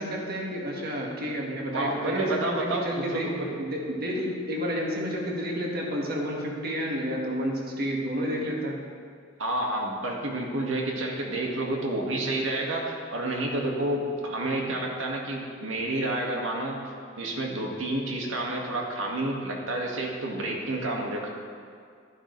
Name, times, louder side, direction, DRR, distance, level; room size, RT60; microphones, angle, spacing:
voice 1, 0.0-8.8, equal, 50° right, -2 dB, 1.8 m, -30 dB
voice 2, 1.7-3.6 9.4-21.3, right 1 dB, 85° right, -1 dB, 1.8 m, -29 dB
12.0 x 11.0 x 3.2 m, 2.2 s
head